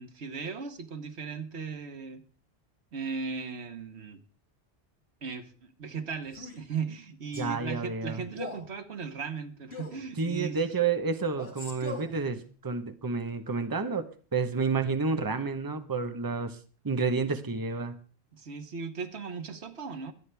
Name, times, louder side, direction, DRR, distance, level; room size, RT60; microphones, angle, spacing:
voice 1, 0.0-2.2 2.9-4.2 5.2-10.6 18.3-20.1, right 5 dB, 85° right, 8 dB, 1.5 m, -37 dB
Male speech man speaking, 6.3-6.6 7.3-7.6 8.3-8.7 9.7-10.0 11.3-12.1, left 3 dB, 80° left, 3.8 m, -40 dB
voice 2, 7.3-8.2 10.2-16.6 16.8-17.9, right 4 dB, 20° right, 8 dB, 0.9 m, -30 dB
24.0 x 9.4 x 3.4 m, 0.37 s
omnidirectional pair, 1.1 m